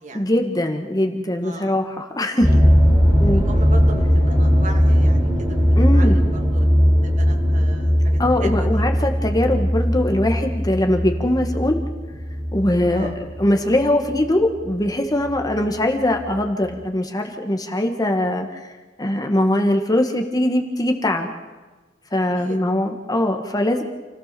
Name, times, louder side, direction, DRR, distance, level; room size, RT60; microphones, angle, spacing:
voice 1, 0.1-2.5 3.2-3.5 5.8-6.2 8.2-11.8 12.5-18.6 19.0-21.3 22.1-23.8, left 1 dB, 20° left, 4 dB, 1.8 m, -21 dB
voice 2, 1.4-1.7 2.5-2.6 3.3-5.6 5.9-6.3 6.5-6.7 7.0-8.8 12.9-13.1 22.4-22.6, right 2 dB, 45° right, 2 dB, 2.6 m, -37 dB
sound 1, 2.4-14.7 15.3-15.6 16.2-16.3 16.7-16.8, equal, 15° right, 5.6 m, -18 dB
28.5 x 16.0 x 7.0 m, 1.2 s
head